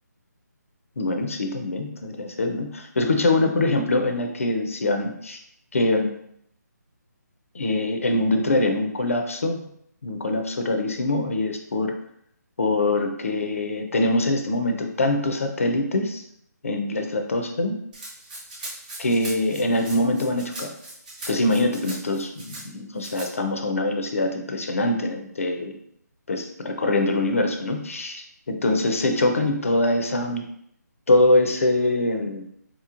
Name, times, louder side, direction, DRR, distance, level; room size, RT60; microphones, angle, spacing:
voice 1, 1.0-5.4 5.7-6.1 7.5-9.6 10.0-11.9 12.6-16.2 16.6-17.8 19.0-20.7 21.3-25.7 26.3-30.5 31.1-32.4, left 2 dB, 50° left, 5 dB, 0.5 m, -23 dB
Rattle (instrument), 17.9-22.6 23.0-23.3, right 1 dB, 25° right, 0.9 m, -39 dB
4.1 x 2.9 x 2.4 m, 0.71 s
hypercardioid pair, 175°, 10 cm